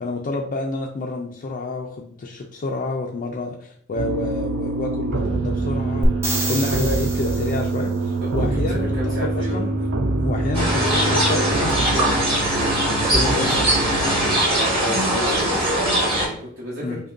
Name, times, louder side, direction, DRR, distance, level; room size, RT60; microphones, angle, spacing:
voice 1, 0.0-6.2 6.5-9.7 10.2-12.2 12.9-13.6 15.1-15.5 16.8-17.0, left 2 dB, 40° left, -1 dB, 0.4 m, -29 dB
sound 1, 4.0-14.4, right 2 dB, 60° right, 0.4 m, -25 dB
sound 2, 6.0-7.9 11.7-11.8, right 1 dB, 15° right, 0.6 m, -26 dB
voice 2, 8.4-9.6 12.5-13.9 14.4-17.0, equal, 80° right, -8 dB, 1.2 m, -31 dB
sound 3, 10.5-16.3, right 1 dB, 30° right, 1.2 m, -21 dB
5.0 x 2.2 x 2.5 m, 0.64 s
head